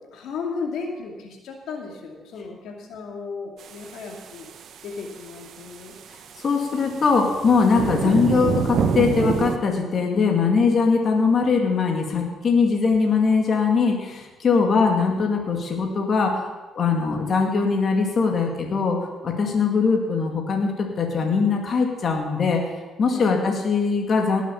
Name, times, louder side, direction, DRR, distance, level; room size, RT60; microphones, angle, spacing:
voice 1, 0.1-4.5 4.8-5.9 14.5-14.8 23.1-23.4, left 4 dB, 80° left, 2 dB, 2.4 m, -35 dB
sound 1, 3.6-9.6, right 6 dB, 65° right, 1.1 m, -28 dB
voice 2, 6.4-19.0 19.2-22.6 23.0-24.4, left 4 dB, 50° left, 2 dB, 2.2 m, -21 dB
18.5 x 7.3 x 7.1 m, 1.2 s
cardioid pair, 95°, 0 cm